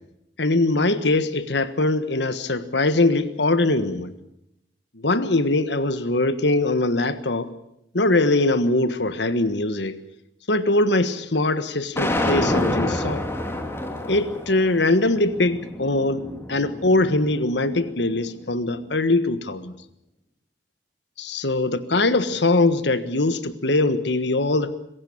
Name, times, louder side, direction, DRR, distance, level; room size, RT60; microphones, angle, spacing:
voice 1, 0.4-4.1 4.9-7.5 7.9-10.0 10.5-13.2 14.1-16.2 16.5-19.7 21.2-24.7, left 2 dB, 70° left, 12 dB, 1.5 m, -22 dB
sound 1, 12.0-18.1, left 1 dB, 15° left, 2.7 m, -28 dB
25.5 x 16.0 x 8.7 m, 0.82 s
head